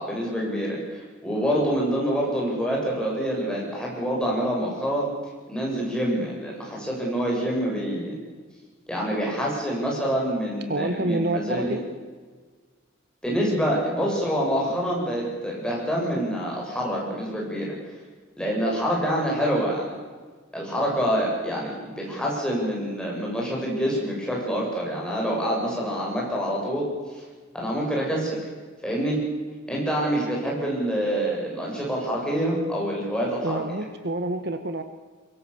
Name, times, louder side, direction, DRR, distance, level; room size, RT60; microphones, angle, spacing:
voice 1, 0.0-5.1 5.5-8.2 8.9-11.8 13.2-17.7 18.4-19.9 20.5-26.9 27.5-28.4 28.8-29.2 29.7-33.6, equal, 5° left, -3 dB, 7.6 m, -26 dB
voice 2, 10.7-11.8 33.4-34.8, right 2 dB, 55° right, 8 dB, 1.4 m, -27 dB
24.0 x 22.5 x 7.1 m, 1.5 s
head